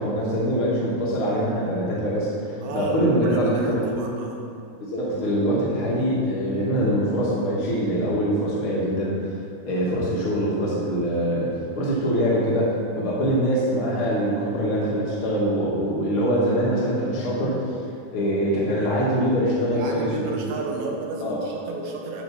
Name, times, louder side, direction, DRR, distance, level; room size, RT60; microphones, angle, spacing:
voice 1, 0.0-4.1 4.8-11.5 11.8-17.7 18.1-20.5 21.2-21.4, equal, 60° left, -6 dB, 1.4 m, -24 dB
voice 2, 2.6-4.4 13.3-13.4 19.7-22.2, right 3 dB, 75° right, 0 dB, 2.8 m, -33 dB
11.5 x 4.3 x 7.0 m, 2.4 s
omnidirectional pair, 4.6 m